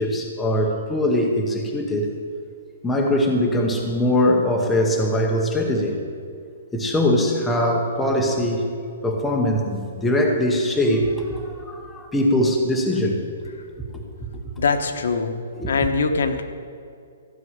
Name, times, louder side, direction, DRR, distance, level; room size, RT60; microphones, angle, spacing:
voice 1, 0.0-2.1 2.8-6.0 6.7-8.7 9.0-13.2 13.9-14.5 15.6-15.7, left 1 dB, 5° left, 0 dB, 0.9 m, -22 dB
voice 2, 14.6-15.4 15.7-16.4, left 4 dB, 65° left, 6 dB, 1.2 m, -23 dB
14.5 x 6.2 x 9.5 m, 2.4 s
hypercardioid pair, 180°, 0 cm